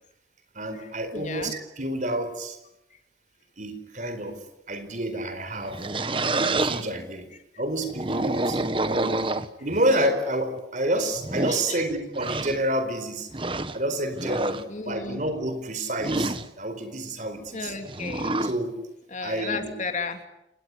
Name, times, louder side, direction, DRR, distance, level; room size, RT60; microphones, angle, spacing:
voice 1, 0.5-2.6 3.6-5.8 6.3-7.3 7.6-9.3 9.6-13.3 13.7-17.7 18.4-18.8 19.2-19.7, right 1 dB, 45° right, 9 dB, 4.5 m, -29 dB
voice 2, 1.1-1.5 11.5-11.8 14.7-15.2 17.5-18.4 19.1-20.2, left 4 dB, 40° left, 6 dB, 3.0 m, -33 dB
sound 1, 5.5-6.8 7.8-9.8 10.6-10.7 11.1-11.6 12.1-12.6 13.3-13.8 14.1-14.6 16.0-16.5 17.8-18.5, right 2 dB, 30° right, 1.3 m, -27 dB
29.5 x 19.5 x 9.9 m, 0.85 s
head